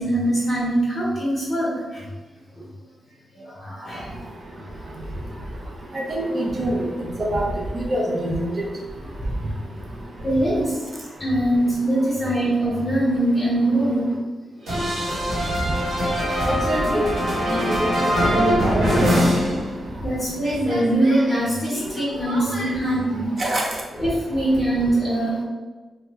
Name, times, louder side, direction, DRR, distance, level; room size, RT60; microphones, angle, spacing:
voice 1, 0.0-2.1 3.3-4.1 10.2-10.8 11.2-14.1 20.0-23.4 24.0-25.4, right 1 dB, 15° left, -9 dB, 0.9 m, -22 dB
voice 2, 5.9-6.9 7.2-7.5 7.7-8.7 16.4-17.1 17.5-19.1 23.4-23.7, right 1 dB, 35° right, -1 dB, 0.6 m, -24 dB
sound 1, 14.7-20.1 20.4-22.7, equal, 85° right, 1.2 m, -23 dB
2.9 x 2.1 x 3.4 m, 1.3 s
wide cardioid pair, 135°, 0 cm